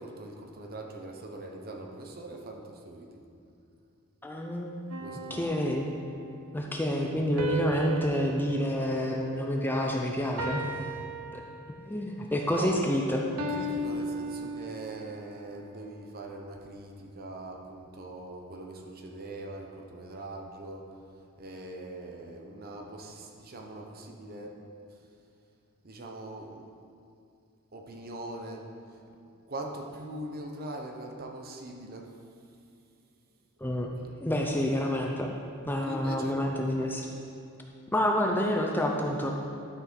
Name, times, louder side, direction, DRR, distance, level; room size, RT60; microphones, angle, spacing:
voice 1, 0.0-3.3 5.0-5.5 12.6-12.8 13.5-20.9 21.4-24.6 24.9-25.0 25.8-26.6 27.7-29.0 29.5-32.1 34.0-34.1 35.8-36.5, right 1 dB, 45° right, 2 dB, 0.9 m, -42 dB
voice 2, 4.2-4.8 5.3-5.8 6.5-10.8 11.3-11.4 11.9-13.3 33.6-33.9 34.2-35.3 35.7-37.1 37.9-39.3, left 1 dB, 10° left, 0 dB, 0.6 m, -28 dB
sound 1, 4.9-6.4 7.4-9.9 10.4-12.0 13.4-15.1, right 1 dB, 85° right, 0.9 m, -37 dB
12.0 x 6.0 x 4.6 m, 2.5 s
head